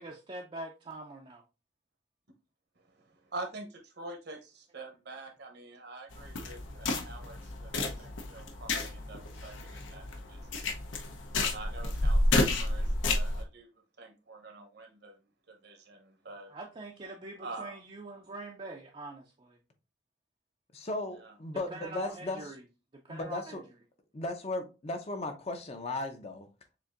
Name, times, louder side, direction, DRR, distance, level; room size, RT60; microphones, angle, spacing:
voice 1, 0.0-1.4 8.0-8.1 16.5-19.6 21.5-22.6 22.9-23.6, right 2 dB, 30° right, 0.5 m, -44 dB
voice 2, 2.8-10.7 11.3-13.7 14.0-15.2 15.5-16.5 17.4-17.7 21.2-21.3, right 2 dB, 60° right, 0.9 m, -46 dB
sound 1, 6.1-13.4, left 2 dB, 80° left, 0.8 m, -31 dB
voice 3, 20.7-22.4 23.1-23.6 24.1-26.5, left 2 dB, 35° left, 0.6 m, -36 dB
6.8 x 2.6 x 2.5 m
head